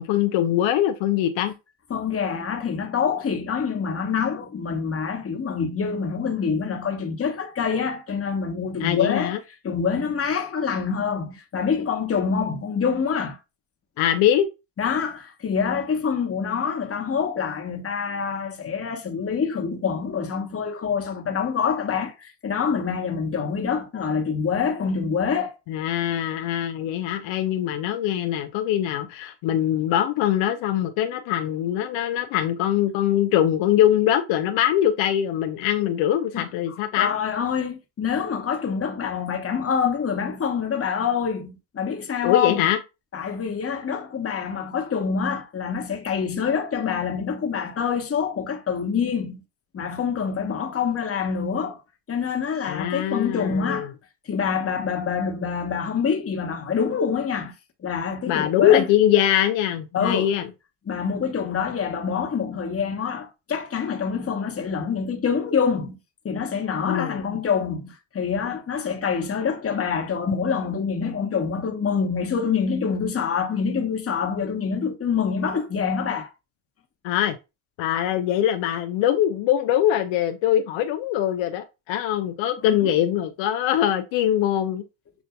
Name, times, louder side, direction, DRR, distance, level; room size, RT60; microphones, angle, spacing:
voice 1, 0.0-1.5 8.8-9.4 14.0-14.5 25.7-37.1 42.2-42.8 52.7-53.9 58.3-60.4 66.9-67.2 77.0-77.4 77.8-84.8, left 11 dB, 75° left, 0.6 m, -22 dB
voice 2, 1.9-9.4 9.6-13.4 14.8-25.6 36.3-42.7 43.1-49.4 49.7-51.8 52.1-53.9 54.3-57.5 57.8-58.9 59.9-60.4 60.9-66.0 66.2-76.3 82.6-82.9, left 6 dB, 30° left, 1.0 m, -26 dB
7.0 x 2.5 x 2.2 m
supercardioid pair, 80°, 46 cm